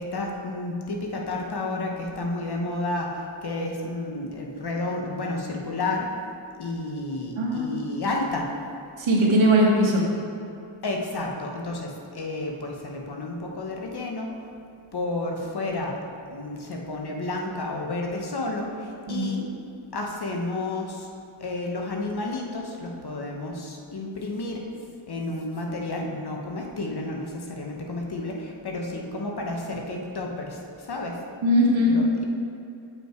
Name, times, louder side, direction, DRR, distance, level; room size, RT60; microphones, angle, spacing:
voice 1, 0.0-6.1 6.6-8.5 10.8-14.3 14.9-16.0 16.3-19.4 19.9-21.1 21.4-24.6 25.1-30.6 30.9-31.2 31.8-32.2, left 2 dB, 50° left, 0 dB, 1.3 m, -31 dB
voice 2, 7.4-7.7 9.0-10.1 19.1-19.3 31.4-32.0, equal, 65° right, -3 dB, 1.8 m, -20 dB
7.2 x 5.7 x 4.6 m, 2.6 s
cardioid pair, 55°, 50 cm